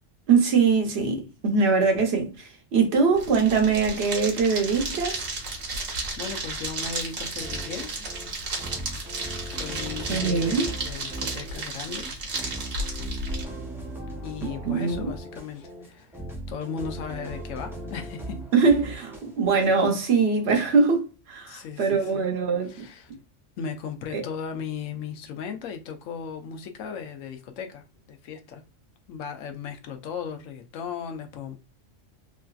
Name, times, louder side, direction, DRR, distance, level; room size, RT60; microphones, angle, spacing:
voice 1, 0.3-5.3 10.1-10.7 14.4-15.1 18.5-22.9 24.1-24.2, right 5 dB, 60° right, 0.9 m, -22 dB
sound 1, 3.1-13.4, right 2 dB, 80° right, 1.3 m, -33 dB
voice 2, 6.2-7.9 9.5-12.2 14.2-16.1 16.5-18.4 21.5-22.3 22.7-23.1 23.6-28.6 29.1-31.6, left 6 dB, 90° left, 1.0 m, -36 dB
sound 2, 7.4-19.7, right 1 dB, 5° right, 0.3 m, -39 dB
3.1 x 2.5 x 2.3 m
omnidirectional pair, 1.3 m